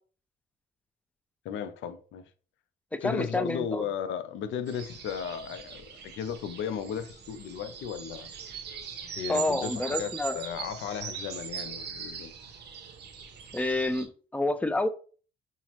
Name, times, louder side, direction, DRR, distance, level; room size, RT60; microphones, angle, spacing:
voice 1, 1.4-2.3 3.0-8.3 9.2-12.3, left 7 dB, 75° left, 0.5 m, -35 dB
voice 2, 2.9-3.8 9.3-10.3 13.5-14.9, left 2 dB, 5° left, 0.4 m, -28 dB
sound 1, 4.7-14.1, right 7 dB, 55° right, 0.7 m, -41 dB
5.6 x 2.0 x 2.9 m
cardioid pair, 90°, 20 cm